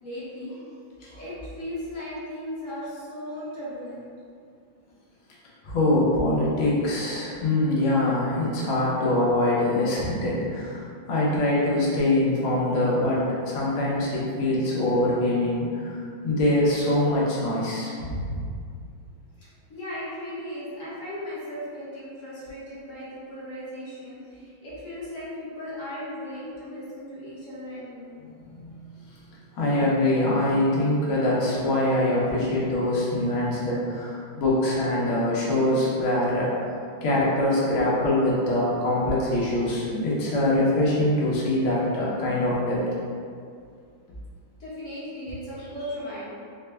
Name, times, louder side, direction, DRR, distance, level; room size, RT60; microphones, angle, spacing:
voice 1, 0.0-0.5 1.1-4.1 19.4-28.2 44.6-46.3, left 1 dB, 45° left, -9 dB, 1.2 m, -37 dB
voice 2, 5.6-18.4 28.5-28.8 29.5-36.5 37.0-42.8, left 1 dB, 85° left, -6 dB, 1.8 m, -24 dB
4.6 x 2.2 x 3.3 m, 2.3 s
omnidirectional pair, 2.3 m